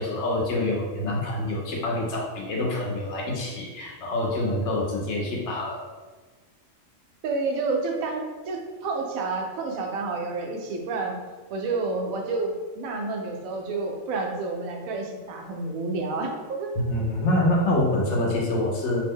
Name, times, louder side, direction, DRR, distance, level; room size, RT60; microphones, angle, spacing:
voice 1, 0.0-5.8 16.8-19.0, left 1 dB, 65° left, -2 dB, 0.9 m, -26 dB
voice 2, 7.2-11.2 11.5-16.7, right 3 dB, 90° right, 1 dB, 1.0 m, -29 dB
2.7 x 2.0 x 3.5 m, 1.3 s
omnidirectional pair, 1.4 m